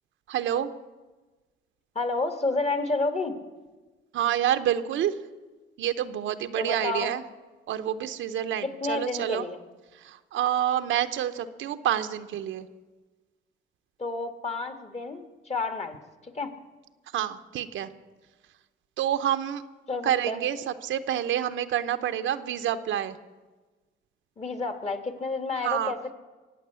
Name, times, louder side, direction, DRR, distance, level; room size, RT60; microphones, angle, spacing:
voice 1, 0.3-0.7 4.1-5.1 5.8-7.2 7.7-9.5 9.9-12.7 17.1-17.9 19.0-19.6 20.0-23.2 25.6-25.9, right 10 dB, 80° right, 10 dB, 0.8 m, -28 dB
voice 2, 2.0-3.4 6.6-7.1 8.6-9.6 14.0-16.0 16.2-16.5 19.9-20.4 24.4-26.1, left 3 dB, 35° left, 7 dB, 1.8 m, -30 dB
23.0 x 8.5 x 6.9 m, 1.3 s
cardioid pair, 90°, 20 cm